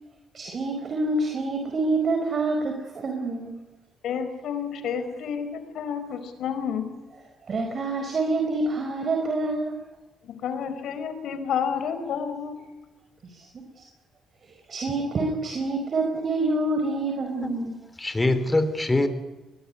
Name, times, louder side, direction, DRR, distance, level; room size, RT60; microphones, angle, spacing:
voice 1, 0.3-3.5 7.5-9.8 13.3-13.8 14.7-17.7, right 2 dB, 45° right, 3 dB, 4.7 m, -27 dB
voice 2, 4.0-6.9 10.2-12.6, left 7 dB, 75° left, 10 dB, 4.4 m, -30 dB
voice 3, 18.0-19.1, left 2 dB, 15° left, 12 dB, 3.4 m, -23 dB
21.5 x 21.5 x 9.7 m, 1.1 s
cardioid pair, 90°, 0 cm